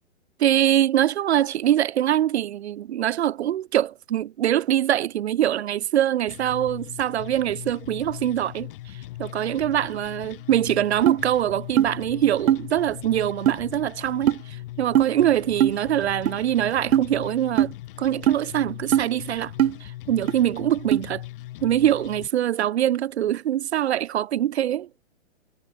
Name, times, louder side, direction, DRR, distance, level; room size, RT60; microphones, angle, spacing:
voice 1, 0.4-17.7 18.0-19.5 19.8-21.2 21.6-24.9, right 11 dB, 55° right, 1.1 m, -23 dB
sound 1, 6.3-22.3, left 16 dB, 40° left, 3.8 m, -39 dB
sound 2, 11.1-11.2 11.8-11.9 12.5-12.6 13.5-13.6 14.3-14.4 14.9-15.1 15.6-15.8 16.3-16.4 16.9-17.1 17.6-17.7 18.3-18.4 18.9-19.1 19.6-19.7 20.3-20.4 20.9-21.0, right 11 dB, 90° right, 0.7 m, -19 dB
hypercardioid pair, 155°, 40 cm